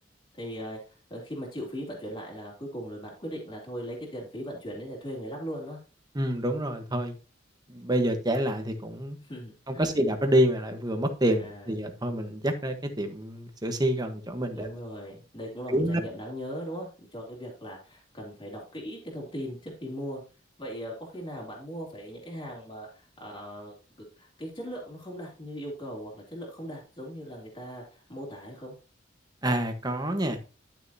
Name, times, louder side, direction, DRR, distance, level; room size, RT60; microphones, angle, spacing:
voice 1, 0.3-5.8 9.2-10.0 11.4-11.7 14.5-20.2 20.6-23.7 24.2-28.7, equal, 25° left, -4 dB, 3.0 m, -39 dB
voice 2, 6.1-7.1 7.7-9.2 9.7-14.7 15.7-16.0 29.4-30.4, right 1 dB, 20° right, 6 dB, 1.3 m, -27 dB
12.0 x 6.6 x 2.9 m, 0.34 s
head